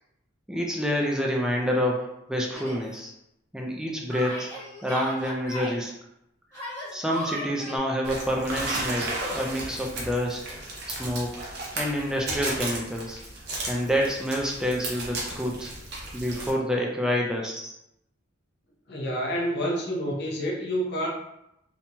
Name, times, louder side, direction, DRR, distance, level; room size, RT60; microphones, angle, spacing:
voice 1, 0.5-3.1 3.5-4.5 4.8-5.9 6.9-10.4 10.9-11.3 11.8-13.2 13.7-15.7 16.1-17.7, equal, 5° right, -1 dB, 0.4 m, -28 dB
Yell, 2.5-2.8 4.1-5.8 6.5-7.8, equal, 15° left, 1.1 m, -36 dB
sound 1, 8.0-16.5, right 2 dB, 55° right, 0.7 m, -34 dB
voice 2, 18.9-21.1, equal, 55° left, -1 dB, 0.6 m, -28 dB
2.8 x 2.7 x 2.2 m, 0.82 s
head